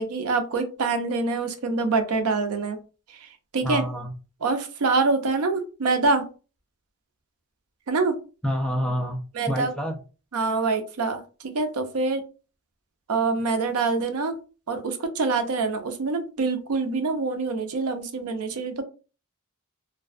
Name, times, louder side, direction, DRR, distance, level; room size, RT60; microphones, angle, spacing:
voice 1, 0.0-2.8 3.2-3.3 3.5-3.8 4.4-6.2 7.9-8.1 9.3-9.7 10.3-12.2 13.1-14.4 14.7-18.8, right 3 dB, 70° right, 7 dB, 0.5 m, -25 dB
voice 2, 3.6-4.1 8.4-9.2 9.5-10.0, equal, 5° left, 2 dB, 0.4 m, -27 dB
2.4 x 2.2 x 2.3 m, 0.34 s
head